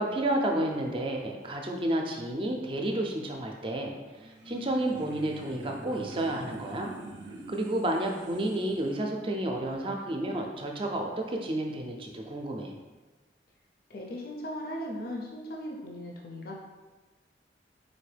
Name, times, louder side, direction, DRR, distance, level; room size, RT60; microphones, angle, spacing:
voice 1, 0.0-3.9 4.2-6.9 7.5-12.7, right 1 dB, 30° right, 2 dB, 0.4 m, -31 dB
sound 1, 4.1-9.0, right 1 dB, 85° right, 0.4 m, -45 dB
voice 2, 13.9-16.6, equal, 55° left, -1 dB, 0.5 m, -38 dB
4.2 x 3.0 x 3.3 m, 1.2 s
head